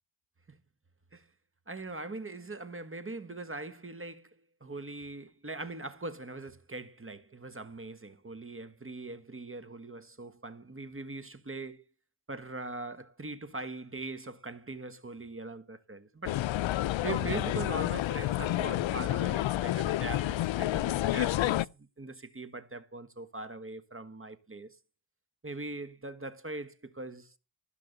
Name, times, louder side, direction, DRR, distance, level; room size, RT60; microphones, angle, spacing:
voice 1, 1.7-11.9 12.3-16.4 17.0-24.8 25.4-27.4, right 3 dB, 25° right, 1.4 m, -41 dB
sound 1, 16.3-21.7, left 15 dB, 65° left, 0.5 m, -29 dB
16.0 x 5.8 x 6.9 m
cardioid pair, 80°, 50 cm